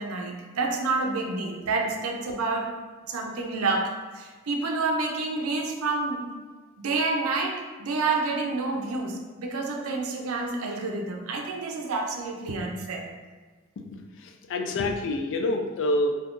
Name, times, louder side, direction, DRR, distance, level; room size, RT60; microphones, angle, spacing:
voice 1, 0.0-2.7 3.1-6.2 6.8-13.0, right 3 dB, 70° right, 1 dB, 0.5 m, -29 dB
voice 2, 13.8-16.2, left 1 dB, 60° left, 5 dB, 0.3 m, -27 dB
2.7 x 2.4 x 3.6 m, 1.4 s
head